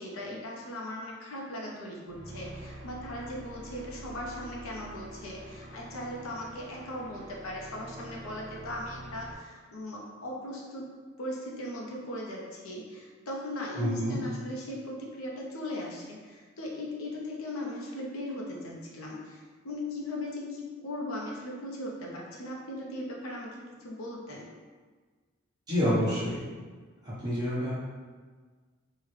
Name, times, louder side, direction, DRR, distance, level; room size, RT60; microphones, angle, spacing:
voice 1, 0.0-10.9 11.2-24.5, left 1 dB, 85° left, -2 dB, 0.6 m, -38 dB
sound 1, 2.0-9.3, right 1 dB, 55° right, 0.5 m, -46 dB
voice 2, 13.8-14.2 25.7-26.4 27.0-27.7, equal, 20° right, -9 dB, 0.9 m, -28 dB
3.6 x 2.1 x 3.1 m, 1.5 s
head